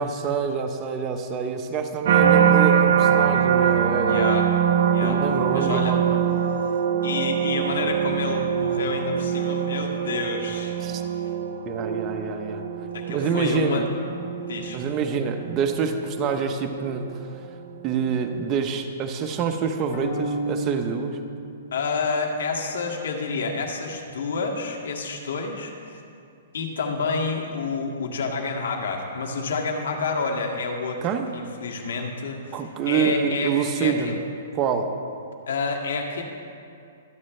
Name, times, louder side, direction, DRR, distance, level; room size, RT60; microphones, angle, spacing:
voice 1, 0.0-4.3 5.0-6.2 10.8-11.0 11.6-12.6 13.1-13.9 14.7-17.3 17.8-21.2 31.0-31.3 32.5-34.2 34.6-34.9, right 6 dB, 20° right, 5 dB, 0.8 m, -26 dB
sound 1, 2.0-17.2 17.8-18.2, right 8 dB, 60° right, 0.9 m, -23 dB
voice 2, 4.1-4.5 4.9-5.2 5.5-6.0 7.0-10.8 12.9-13.9 14.5-14.8 21.7-26.0 26.5-31.0 31.3-34.1 35.5-36.2, left 4 dB, 80° left, 2 dB, 2.1 m, -29 dB
sound 2, 19.9-22.2, right 1 dB, 50° left, 3.6 m, -33 dB
25.0 x 9.8 x 3.3 m, 2.5 s
hypercardioid pair, 165°, 0 cm